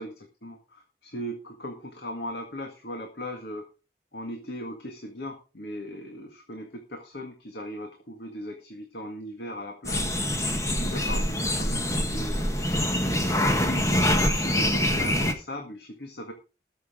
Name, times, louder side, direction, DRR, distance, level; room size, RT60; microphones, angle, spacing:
voice 1, 0.0-3.6 4.1-10.1 10.8-12.5 13.5-16.3, equal, 70° left, 3 dB, 1.9 m, -38 dB
sound 1, 9.8-15.3, left 1 dB, 15° left, 1.4 m, -25 dB
20.5 x 6.9 x 3.8 m, 0.32 s
head